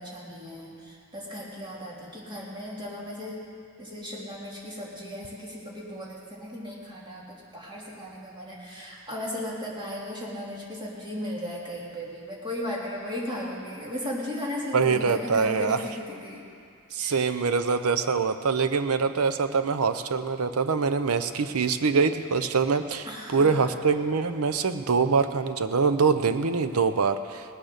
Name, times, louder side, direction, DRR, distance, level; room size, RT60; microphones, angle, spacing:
voice 1, 0.0-3.4 3.8-16.4 17.0-17.3 23.1-23.7, left 1 dB, 20° right, -5 dB, 2.8 m, -36 dB
voice 2, 14.7-15.8 16.9-27.6, right 5 dB, 80° right, 10 dB, 0.7 m, -24 dB
19.0 x 8.8 x 6.6 m, 2.4 s
head